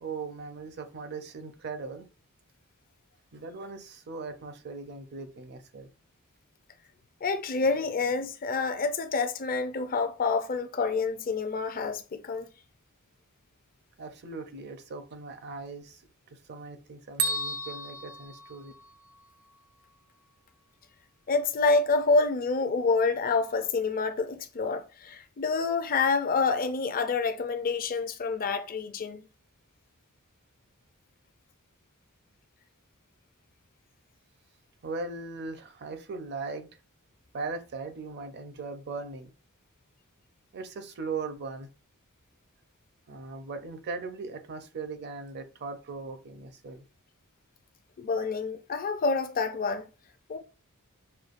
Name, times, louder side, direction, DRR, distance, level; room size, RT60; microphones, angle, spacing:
voice 1, 0.0-2.1 3.3-5.9 14.0-16.0 16.3-18.7 34.8-36.7 37.3-39.3 40.5-41.7 43.1-46.9, right 4 dB, 50° right, 0.6 m, -39 dB
voice 2, 7.2-12.5 21.3-29.2 48.0-49.9 50.3-50.4, left 4 dB, 40° left, 0.5 m, -27 dB
Bell, 17.2-19.2, right 2 dB, 75° right, 0.9 m, -33 dB
6.4 x 2.3 x 2.5 m
head